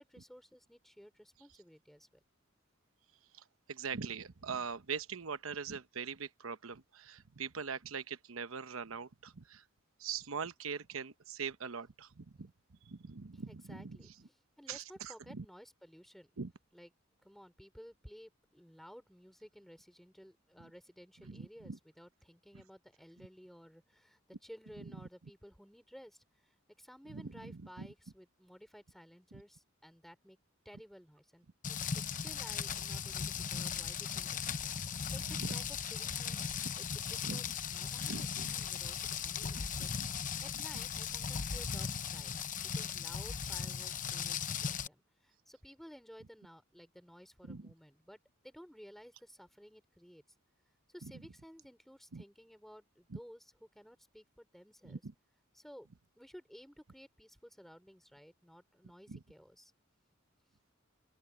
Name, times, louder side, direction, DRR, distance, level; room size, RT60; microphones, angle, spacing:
voice 1, 0.0-2.2 13.3-16.3 16.7-30.4 30.6-34.8 35.1-50.2 50.9-55.1 55.5-55.9 56.2-59.7 60.4-60.6, equal, ahead, 4.4 m, -56 dB
voice 2, 3.3-9.6 10.0-12.5 12.8-14.1 14.7-15.4 16.4-16.5 20.6-20.7 21.2-21.8 22.5-22.6 23.2-23.3 24.8-25.1 27.1-27.9 29.3-29.4 35.3-35.6 37.2-37.5 38.1-38.5 39.4-39.5 40.0-40.1 47.4-47.7 51.0-51.1 52.1-52.2 53.1-53.2 54.8-55.1 59.1-59.2, right 5 dB, 75° right, 0.9 m, -42 dB
Rain, 31.6-44.9, left 7 dB, 40° left, 0.8 m, -38 dB
open air
head